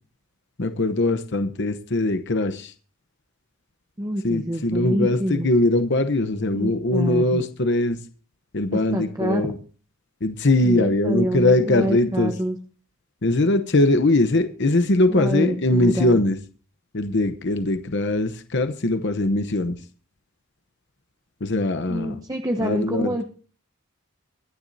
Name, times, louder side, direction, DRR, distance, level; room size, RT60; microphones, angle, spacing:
voice 1, 0.6-2.7 4.2-8.0 8.5-9.5 10.2-12.3 13.2-16.4 16.9-19.8 21.4-22.2 22.6-23.1, left 2 dB, 55° left, 9 dB, 0.9 m, -21 dB
voice 2, 4.0-5.5 6.5-7.4 8.9-9.4 10.6-12.6 15.1-16.2 21.9-23.2, equal, 15° right, 3 dB, 1.0 m, -26 dB
24.5 x 10.5 x 2.8 m, 0.40 s
head